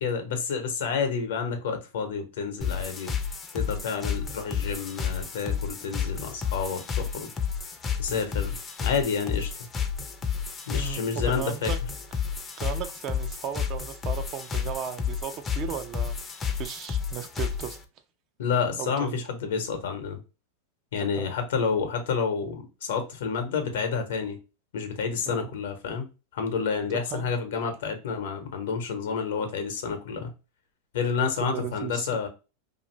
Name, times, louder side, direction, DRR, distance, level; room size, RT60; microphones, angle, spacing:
voice 1, 0.0-3.2 3.5-7.3 8.0-9.5 10.7-11.7 18.4-20.2 20.9-24.4 24.7-26.1 26.3-30.3 30.9-32.3, left 5 dB, 75° left, 0.8 m, -29 dB
sound 1, 2.6-17.8, left 7 dB, 20° left, 0.5 m, -31 dB
voice 2, 10.7-11.8 12.6-16.2 16.5-17.8 18.8-19.2 21.0-21.3 25.2-25.5 27.1-27.3 31.2-32.1, right 9 dB, 45° right, 0.5 m, -36 dB
2.5 x 2.5 x 3.0 m
hypercardioid pair, 110°, 0 cm